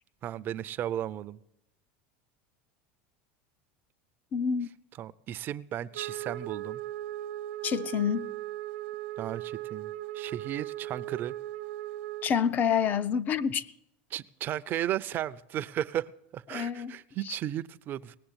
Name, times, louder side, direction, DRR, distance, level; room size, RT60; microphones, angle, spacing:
voice 1, 0.2-1.4 5.0-6.8 9.2-11.3 14.1-18.2, right 11 dB, 40° right, 0.6 m, -35 dB
voice 2, 4.3-4.7 7.6-8.3 12.2-13.7 16.5-16.9 17.3-17.4, left 7 dB, 35° left, 0.6 m, -28 dB
Wind instrument woodwind instrument, 5.9-12.4, right 14 dB, 80° right, 1.1 m, -38 dB
19.0 x 7.5 x 8.9 m
supercardioid pair, 130°, 5 cm